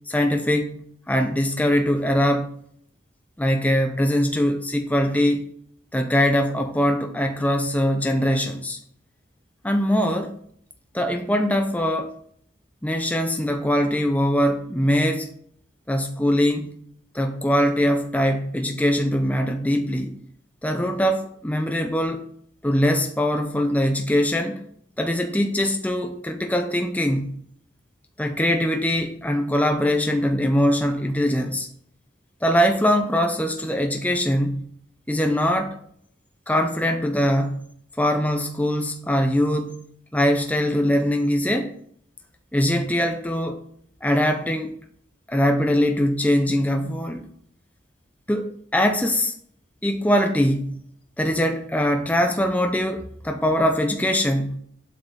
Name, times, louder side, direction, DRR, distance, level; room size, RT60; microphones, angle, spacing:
voice 1, 0.1-2.5 3.4-5.5 5.9-8.8 9.6-10.4 10.9-12.1 12.8-15.3 15.9-16.7 17.1-20.1 20.6-22.2 22.6-24.6 25.0-27.3 28.2-31.7 32.4-34.6 35.1-35.8 36.5-37.6 38.0-39.8 40.1-41.7 42.5-43.6 44.0-44.8 45.3-47.3 48.3-49.3 49.8-50.8 51.2-54.6, equal, 10° left, 0.7 m, -22 dB
7.9 x 5.6 x 5.8 m
head